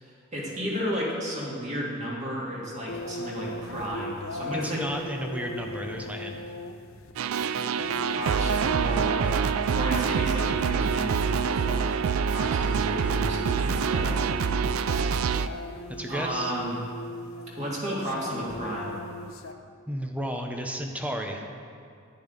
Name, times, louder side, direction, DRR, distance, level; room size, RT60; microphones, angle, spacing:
voice 1, 0.0-4.8 8.1-9.3 9.7-11.9 12.3-14.2 16.1-16.8 17.6-19.0, equal, 35° right, -5 dB, 2.2 m, -33 dB
sound 1, 2.9-19.5, left 2 dB, 85° left, 0.6 m, -39 dB
voice 2, 4.6-6.4 15.9-16.5 19.9-21.4, equal, 5° right, 3 dB, 0.7 m, -33 dB
sound 2, 7.2-15.5, right 6 dB, 90° right, 0.4 m, -26 dB
10.5 x 10.0 x 3.9 m, 2.3 s
head